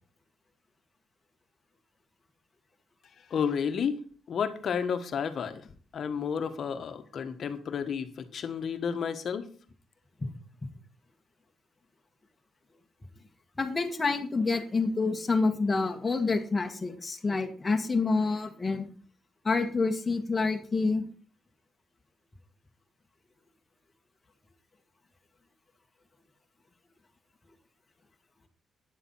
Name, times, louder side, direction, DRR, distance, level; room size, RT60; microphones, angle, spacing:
voice 1, 3.3-4.0 4.3-5.7 5.9-9.5, left 7 dB, 55° left, 8 dB, 1.5 m, -31 dB
voice 2, 13.6-18.9 19.4-21.0, left 3 dB, 20° left, 3 dB, 1.8 m, -27 dB
9.9 x 7.2 x 5.7 m, 0.43 s
cardioid pair, 90°, 0 cm